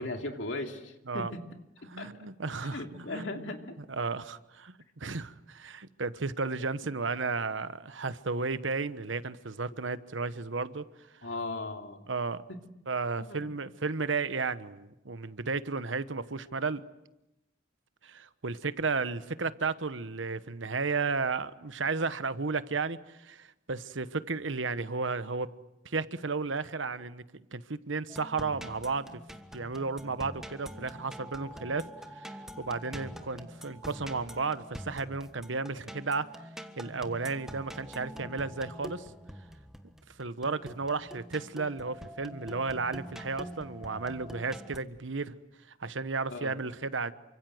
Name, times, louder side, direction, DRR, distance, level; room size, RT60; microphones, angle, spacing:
voice 1, 0.0-1.4 2.0-2.1 2.6-3.8 11.2-12.1 12.5-12.6 13.2-13.5 46.3-46.6, left 2 dB, 65° left, 4 dB, 2.8 m, -38 dB
voice 2, 1.9-2.8 3.1-3.3 3.9-10.8 12.1-12.4 12.9-16.8 18.0-25.5 25.8-27.2 27.5-29.2 29.5-31.9 32.1-36.3 36.8-39.1 40.2-45.4 45.8-47.1, right 4 dB, 75° right, 13 dB, 1.1 m, -33 dB
sound 1, 28.1-44.8, equal, 5° right, 1.5 m, -45 dB
29.0 x 25.5 x 7.9 m, 0.90 s
head